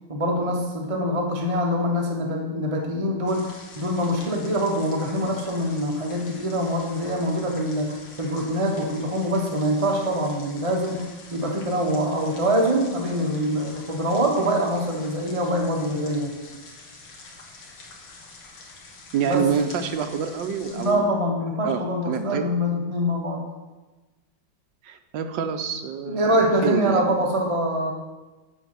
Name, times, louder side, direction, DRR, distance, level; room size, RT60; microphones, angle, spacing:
voice 1, 0.1-11.0 11.3-16.3 19.2-19.5 20.7-23.5 26.1-27.9, equal, 30° right, 0 dB, 0.6 m, -24 dB
sound 1, 3.3-20.9, left 3 dB, 80° left, 2.2 m, -46 dB
voice 2, 19.1-21.1 21.6-22.4 24.8-27.1, right 7 dB, 70° right, 7 dB, 1.4 m, -27 dB
6.8 x 6.3 x 7.5 m, 1.2 s
omnidirectional pair, 2.2 m